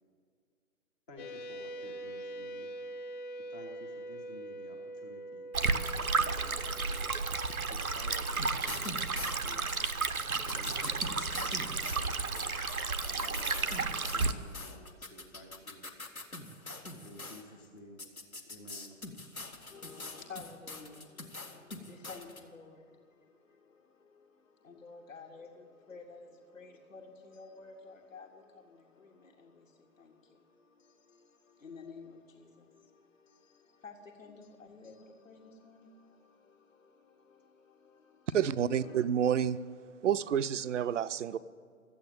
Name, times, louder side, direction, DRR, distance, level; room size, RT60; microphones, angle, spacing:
voice 1, 1.1-2.7 3.5-7.4 7.7-9.9 10.2-12.5 13.1-16.4 17.0-18.0 18.5-18.9, left 1 dB, 5° left, 0 dB, 0.5 m, -53 dB
sound 1, 1.2-9.2, right 1 dB, 35° left, 1.1 m, -45 dB
Stream, 5.5-14.3, right 4 dB, 90° right, 0.8 m, -32 dB
sound 2, 8.4-17.4 18.0-22.4, left 2 dB, 90° left, 1.5 m, -43 dB
voice 2, 19.7-38.4 38.8-39.0, left 4 dB, 70° left, -2 dB, 1.6 m, -53 dB
voice 3, 38.3-39.6 40.0-41.4, right 9 dB, 60° right, 15 dB, 0.5 m, -29 dB
13.0 x 8.6 x 8.9 m, 2.1 s
figure-of-eight pair, 125°, 41 cm